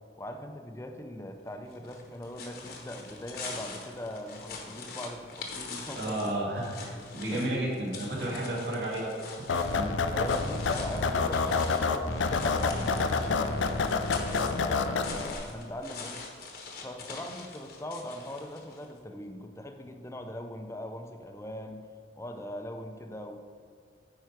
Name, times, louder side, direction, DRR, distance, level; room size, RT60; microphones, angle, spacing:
voice 1, 0.2-6.3 7.3-7.8 10.1-12.8 13.3-16.2 16.8-21.9 22.2-23.4, left 1 dB, 15° left, 5 dB, 0.5 m, -41 dB
sound 1, 1.7-18.9, left 4 dB, 50° left, 1.1 m, -44 dB
voice 2, 5.9-9.2 9.7-9.9, right 1 dB, 60° right, -4 dB, 2.1 m, -32 dB
sound 2, 9.5-15.3, left 4 dB, 80° left, 0.5 m, -28 dB
9.2 x 4.7 x 4.6 m, 2.3 s
head